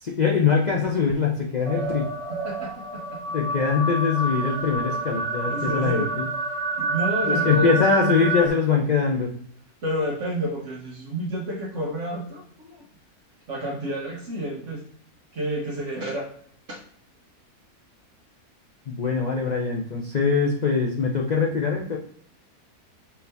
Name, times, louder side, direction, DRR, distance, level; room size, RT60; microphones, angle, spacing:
voice 1, 0.0-2.1 3.3-6.2 7.2-9.3 18.9-22.0, left 5 dB, 75° left, -2 dB, 0.4 m, -23 dB
sound 1, 1.7-8.5, right 2 dB, 80° right, 1.4 m, -28 dB
voice 2, 2.3-3.3 4.7-6.1 6.8-7.8 9.8-12.9 13.5-14.9 15.3-16.3 16.7-16.8, equal, 55° right, -1 dB, 1.1 m, -30 dB
4.6 x 2.6 x 3.3 m, 0.62 s
omnidirectional pair, 1.6 m